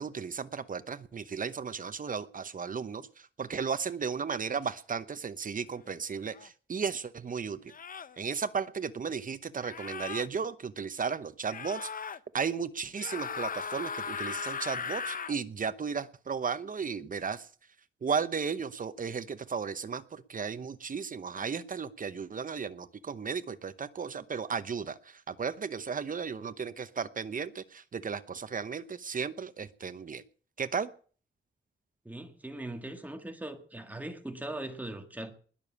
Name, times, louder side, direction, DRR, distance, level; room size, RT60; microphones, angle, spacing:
voice 1, 0.0-7.7 8.2-11.9 12.3-17.5 18.0-30.2 30.6-30.9, right 6 dB, 40° right, 0.9 m, -35 dB
sound 1, 6.3-6.5 7.7-8.2 9.6-10.3 11.5-12.2 12.9-15.4, left 6 dB, 45° left, 0.7 m, -37 dB
voice 2, 32.1-35.3, right 1 dB, 10° right, 1.9 m, -40 dB
20.5 x 7.0 x 8.5 m
wide cardioid pair, 170°, 20 cm